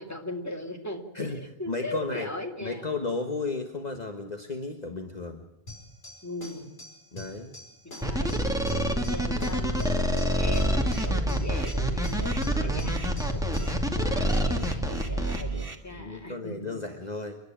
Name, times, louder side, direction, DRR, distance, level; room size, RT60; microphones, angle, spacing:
voice 1, 0.0-1.3 1.6-2.9 6.2-6.7 7.8-8.5 9.0-16.8, left 1 dB, 15° left, 3 dB, 2.5 m, -39 dB
voice 2, 1.7-2.3 2.6-5.4 7.1-7.5 9.3-9.6 12.5-12.8 15.9-17.4, left 3 dB, 45° left, 4 dB, 1.5 m, -34 dB
sound 1, 5.7-13.9, left 1 dB, 75° left, 5.6 m, -45 dB
sound 2, 8.0-15.4, equal, 5° right, 2.4 m, -27 dB
sound 3, 10.4-15.7, right 2 dB, 30° right, 2.2 m, -32 dB
29.5 x 11.5 x 8.7 m, 0.89 s
omnidirectional pair, 1.0 m